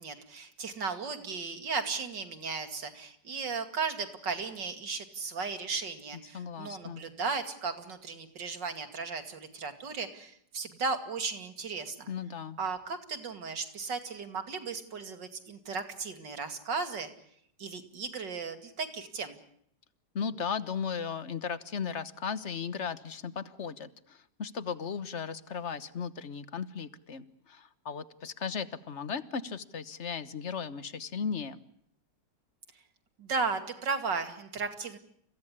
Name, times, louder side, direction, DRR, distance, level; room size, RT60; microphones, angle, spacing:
voice 1, 0.0-12.1 12.6-17.1 17.6-19.4 33.2-35.0, right 4 dB, 80° right, 8 dB, 3.1 m, -35 dB
voice 2, 6.3-7.0 12.1-12.6 20.1-31.6, left 6 dB, 45° left, 13 dB, 1.4 m, -36 dB
29.5 x 16.0 x 9.9 m, 0.69 s
omnidirectional pair, 1.9 m